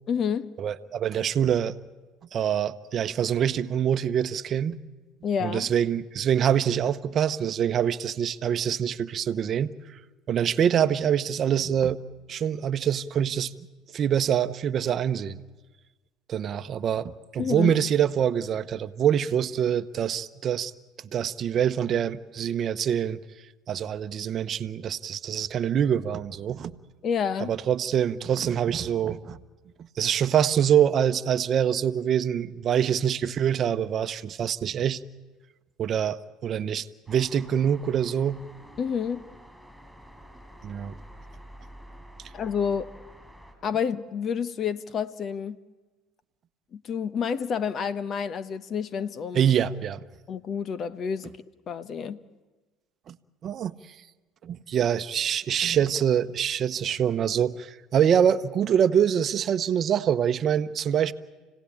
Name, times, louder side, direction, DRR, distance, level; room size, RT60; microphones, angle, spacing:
voice 1, 0.1-0.5 5.2-5.7 17.4-17.7 27.0-27.5 38.8-39.3 42.3-42.9 43.6-45.6 46.7-49.5 50.3-51.3 51.7-52.2, left 7 dB, 45° left, 1.0 m, -29 dB
voice 2, 0.6-1.7 2.3-4.8 5.4-10.0 10.3-12.0 12.3-13.5 13.9-15.4 16.3-20.7 21.1-23.2 23.7-26.7 27.4-29.4 30.0-35.0 35.8-38.4 40.6-40.9 49.3-50.0 53.1-53.2 53.4-53.7 54.4-61.1, right 9 dB, 45° right, 0.9 m, -25 dB
sound 1, 37.1-43.5, equal, ahead, 7.8 m, -48 dB
29.5 x 17.5 x 8.7 m
supercardioid pair, 90°, 0 cm